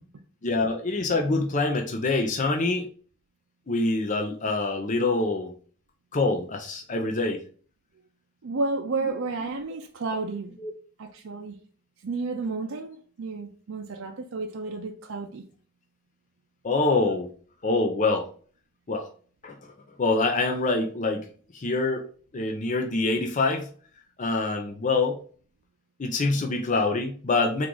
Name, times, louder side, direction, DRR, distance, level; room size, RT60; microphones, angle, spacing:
voice 1, 0.4-2.9 3.7-5.5 6.1-7.4 10.6-10.7 16.6-17.3 17.6-18.3 18.9-19.1 19.4-19.7 20.0-21.3 21.5-22.0 22.3-23.7 24.2-25.2 26.0-27.7, left 3 dB, 35° left, 0.5 m, -25 dB
voice 2, 8.4-10.6 11.0-11.6 12.0-15.4, right 3 dB, 65° right, 0.5 m, -31 dB
4.5 x 2.5 x 3.8 m
head